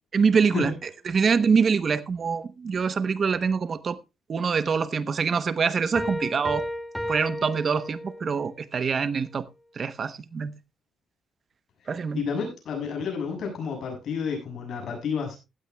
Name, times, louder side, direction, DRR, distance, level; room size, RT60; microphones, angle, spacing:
voice 1, 0.1-4.0 4.3-6.7 7.1-9.4 9.8-10.5 11.9-12.2, right 5 dB, 45° right, 0.9 m, -25 dB
Piano, 5.9-8.4, equal, ahead, 1.7 m, -33 dB
voice 2, 12.1-15.4, left 6 dB, 65° left, 6.9 m, -30 dB
16.0 x 13.0 x 2.3 m
cardioid pair, 105°, 0 cm